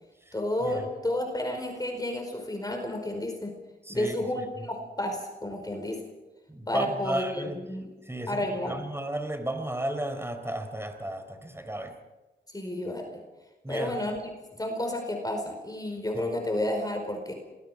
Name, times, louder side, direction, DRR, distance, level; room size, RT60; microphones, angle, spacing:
voice 1, 0.3-3.5 3.9-6.0 6.7-7.9 8.3-8.8 12.5-13.2 13.7-17.3, left 1 dB, 20° left, 3 dB, 4.8 m, -31 dB
voice 2, 3.8-4.2 6.5-7.6 8.1-8.4 8.6-11.9 13.6-14.0 16.1-16.3, right 1 dB, 15° right, 8 dB, 4.3 m, -33 dB
27.0 x 21.0 x 5.0 m, 1.1 s
cardioid pair, 60°, 19 cm